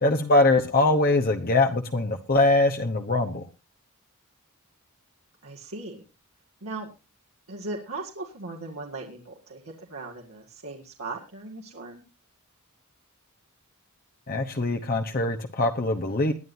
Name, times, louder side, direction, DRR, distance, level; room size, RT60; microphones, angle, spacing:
voice 1, 0.0-3.5 14.3-16.3, left 2 dB, 40° left, 5 dB, 1.0 m, -22 dB
voice 2, 5.4-6.0 6.6-6.9 7.5-12.0, right 2 dB, 70° right, -1 dB, 2.0 m, -38 dB
20.5 x 11.0 x 2.7 m, 0.29 s
head